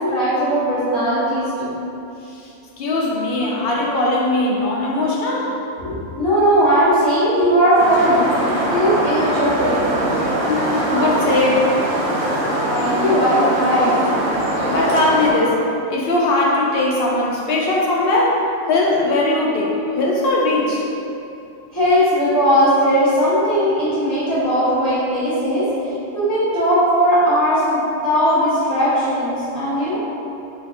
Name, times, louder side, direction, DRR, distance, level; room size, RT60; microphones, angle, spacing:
voice 1, 0.0-1.7 5.8-8.3 8.7-9.8 12.7-13.9 21.7-30.0, equal, 20° left, -18 dB, 1.2 m, -18 dB
voice 2, 2.8-5.5 10.5-11.7 14.7-15.6 15.9-20.8, left 2 dB, 60° left, -3 dB, 0.8 m, -19 dB
sound 1, 7.8-15.3, right 1 dB, 85° right, 1.0 m, -22 dB
3.9 x 3.3 x 2.5 m, 2.7 s
omnidirectional pair, 1.3 m